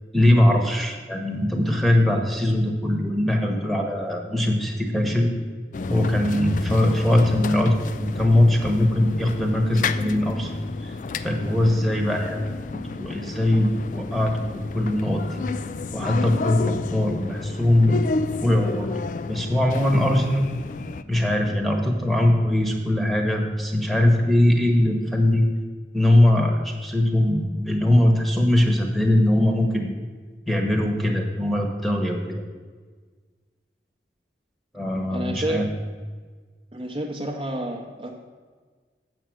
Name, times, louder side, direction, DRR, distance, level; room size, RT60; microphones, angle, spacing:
voice 1, 0.1-5.3 5.9-10.5 10.8-11.0 11.2-12.4 12.7-15.4 15.9-18.0 18.4-18.9 19.3-20.5 21.1-25.5 25.9-29.9 30.5-32.4 34.7-35.7, left 1 dB, ahead, 2 dB, 1.1 m, -21 dB
sound 1, 5.7-21.0, left 4 dB, 45° left, 0.3 m, -31 dB
voice 2, 35.1-35.6 36.7-38.1, right 1 dB, 30° right, 1 dB, 0.7 m, -29 dB
7.8 x 6.1 x 7.6 m, 1.5 s
head